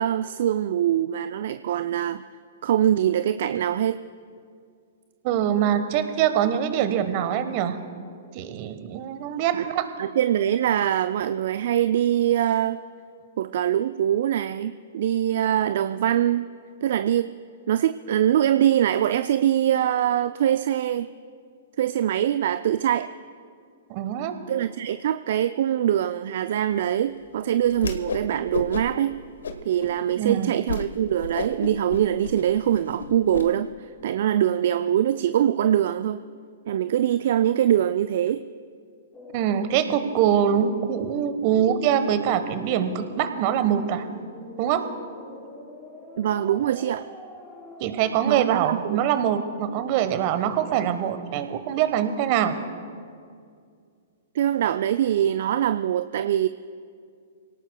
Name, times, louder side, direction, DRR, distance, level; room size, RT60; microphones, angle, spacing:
voice 1, 0.0-2.2 2.6-4.0 9.5-9.7 10.0-12.8 13.4-16.5 16.8-17.3 17.7-21.1 21.8-23.1 24.5-29.1 29.6-36.2 36.7-38.4 46.2-47.1 48.3-49.0 54.3-56.5, right 10 dB, 60° right, 12 dB, 0.4 m, -23 dB
voice 2, 5.2-7.8 8.3-9.9 23.9-24.4 30.1-30.5 39.3-44.0 44.6-44.8 47.8-52.6, right 9 dB, 45° right, 10 dB, 1.1 m, -24 dB
Whoosh swoosh swish, 27.7-28.3 28.5-29.0 29.4-29.9 30.3-30.4 30.7-30.9 31.2-33.4, left 4 dB, 75° left, 1.1 m, -31 dB
sound 1, 39.1-48.6, left 2 dB, 20° left, 3.3 m, -43 dB
26.5 x 18.0 x 2.2 m, 2.2 s
figure-of-eight pair, 115°, 0 cm